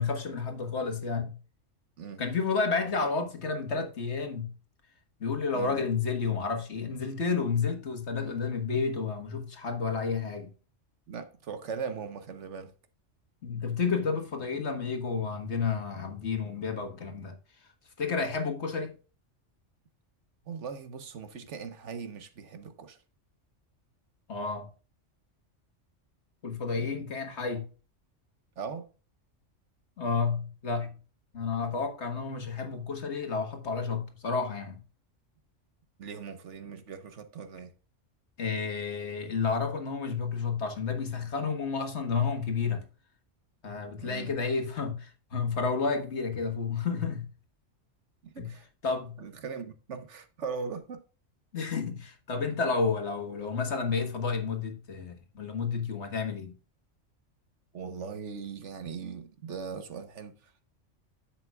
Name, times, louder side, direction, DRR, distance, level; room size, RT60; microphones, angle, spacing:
voice 1, 0.0-1.4 2.2-4.5 5.2-10.5 13.4-17.4 18.0-18.9 24.3-24.7 26.4-27.7 30.0-30.9 31.3-34.8 38.4-42.8 43.6-47.3 48.4-48.5 48.8-49.2 51.5-56.5, left 5 dB, 60° left, 1.8 m, -31 dB
voice 2, 5.5-5.9 11.1-12.7 20.5-23.0 26.8-27.1 28.6-28.9 36.0-37.7 44.0-44.3 48.2-48.7 49.2-51.0 57.7-60.7, right 6 dB, 70° right, 1.3 m, -40 dB
10.0 x 7.5 x 2.3 m
omnidirectional pair, 1.3 m